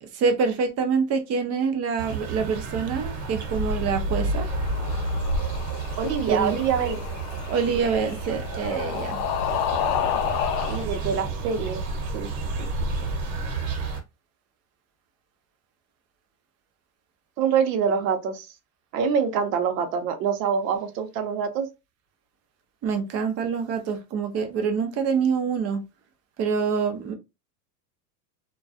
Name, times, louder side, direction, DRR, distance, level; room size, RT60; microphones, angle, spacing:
voice 1, 0.0-4.5 6.3-6.6 7.5-9.2 22.8-25.8 26.4-27.1, right 5 dB, 30° right, 0.5 m, -26 dB
sound 1, 2.0-14.0, right 2 dB, 55° right, 1.1 m, -30 dB
sound 2, 4.1-10.8, left 9 dB, 50° left, 0.5 m, -31 dB
voice 2, 6.0-7.2 10.7-11.8 12.1-12.3 12.6-12.7 17.4-18.5 18.9-21.7, right 7 dB, 75° right, 0.8 m, -25 dB
2.3 x 2.3 x 2.5 m
supercardioid pair, 115°, 50 cm